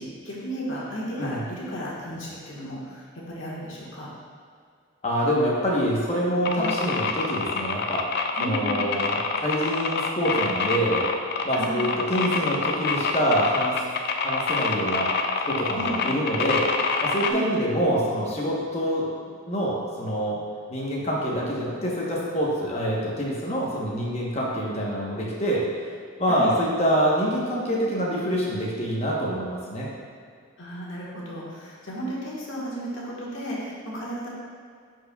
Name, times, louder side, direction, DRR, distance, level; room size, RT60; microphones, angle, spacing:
voice 1, 0.0-4.1 6.5-6.7 8.4-8.9 11.5-11.9 15.7-16.0 17.2-17.5 26.3-26.5 30.6-34.3, right 1 dB, 65° left, -6 dB, 1.5 m, -34 dB
voice 2, 5.0-8.0 8.4-11.1 11.4-13.8 14.2-15.1 15.5-16.6 17.0-20.4 20.7-25.6 26.2-29.9, equal, 30° left, -4 dB, 1.1 m, -26 dB
sound 1, 6.5-17.3, left 4 dB, 50° left, 0.4 m, -26 dB
10.5 x 4.6 x 2.3 m, 2.1 s
head